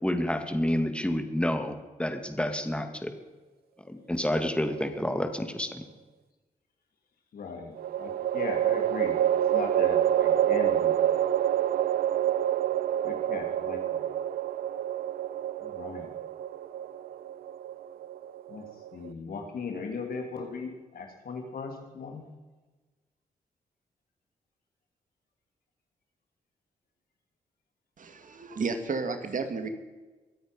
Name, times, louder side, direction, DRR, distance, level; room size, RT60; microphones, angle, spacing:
voice 1, 0.0-3.1 3.9-5.8, left 1 dB, 5° left, 7 dB, 2.3 m, -29 dB
sound 1, 4.7-5.5 7.8-19.1, right 11 dB, 85° right, 0.5 m, -27 dB
voice 2, 7.3-9.2 9.5-11.0 13.0-14.1 15.6-16.1 18.5-18.7 18.9-22.3, left 4 dB, 75° left, 3 dB, 3.1 m, -38 dB
voice 3, 28.0-29.7, right 4 dB, 60° right, 8 dB, 2.0 m, -32 dB
23.5 x 8.6 x 5.4 m, 1.2 s
cardioid pair, 60°, 15 cm